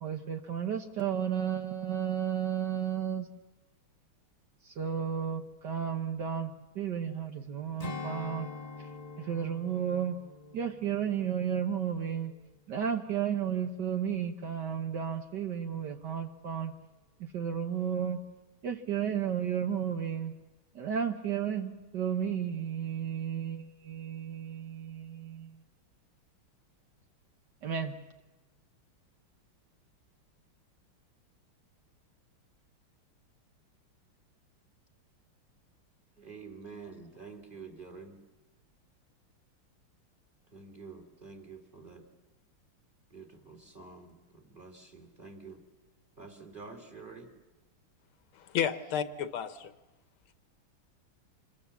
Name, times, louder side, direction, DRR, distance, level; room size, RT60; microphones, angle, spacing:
voice 1, 0.0-3.3 4.7-8.5 9.2-10.2 10.5-12.3 12.7-16.7 17.2-18.2 18.6-20.3 20.7-25.5 27.6-28.0, right 8 dB, 60° right, 6 dB, 1.5 m, -33 dB
Strum, 7.8-12.5 12.9-13.1, left 4 dB, 20° left, 1.1 m, -45 dB
voice 2, 36.2-38.2 40.5-42.0 43.1-45.6 46.2-47.3, right 4 dB, 25° right, 2 dB, 2.8 m, -48 dB
voice 3, 48.3-49.7, left 8 dB, 75° left, 10 dB, 1.8 m, -32 dB
26.0 x 22.5 x 7.1 m, 1.1 s
omnidirectional pair, 2.3 m